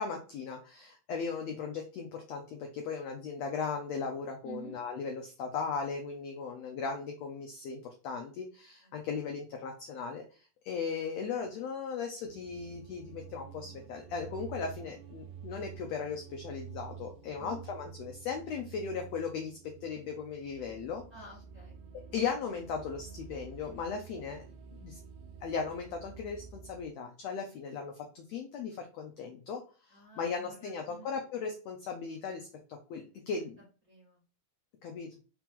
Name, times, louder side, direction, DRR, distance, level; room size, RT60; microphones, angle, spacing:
voice 1, 0.0-21.0 22.1-24.4 24.8-25.0 25.4-29.6 29.9-32.5 32.9-33.6 34.8-35.1, left 5 dB, 80° left, 3 dB, 1.5 m, -37 dB
voice 2, 4.4-4.8 8.8-9.4 17.4-17.6 21.1-21.8 28.0-28.1 29.9-31.1 33.0-33.2 33.9-34.2, right 4 dB, 30° right, -5 dB, 1.7 m, -51 dB
sound 1, 12.2-26.9, right 7 dB, 90° right, 1.6 m, -49 dB
4.9 x 3.0 x 3.6 m, 0.36 s
omnidirectional pair, 3.8 m